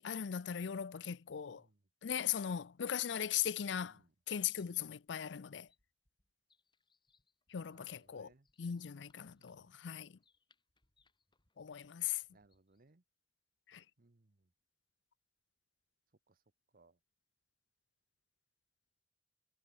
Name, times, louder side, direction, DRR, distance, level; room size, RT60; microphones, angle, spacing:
voice 1, 0.0-1.6 2.0-4.0 4.3-5.7 7.5-8.3 8.6-10.2 11.6-12.2 13.7-13.8, left 9 dB, 75° left, 0.5 m, -39 dB
sound 1, 2.7-12.9, left 4 dB, 25° left, 5.7 m, -77 dB
voice 2, 3.8-4.1 7.7-8.5 9.4-9.8 12.3-13.0 14.0-14.5 16.3-16.4 16.7-17.0, right 2 dB, 55° right, 1.0 m, -68 dB
head